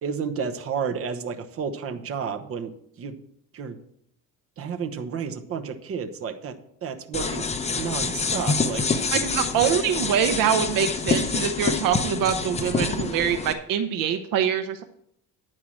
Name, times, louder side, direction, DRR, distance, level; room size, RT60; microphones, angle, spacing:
voice 1, 0.0-2.7 3.0-3.2 3.5-3.8 4.6-6.5 6.8-9.0, right 6 dB, 40° right, 6 dB, 1.0 m, -31 dB
sound 1, 7.1-13.5, left 4 dB, 20° left, 0.7 m, -26 dB
voice 2, 9.1-14.8, right 8 dB, 65° right, 8 dB, 0.8 m, -24 dB
10.0 x 4.7 x 7.5 m, 0.72 s
cardioid pair, 135°, 36 cm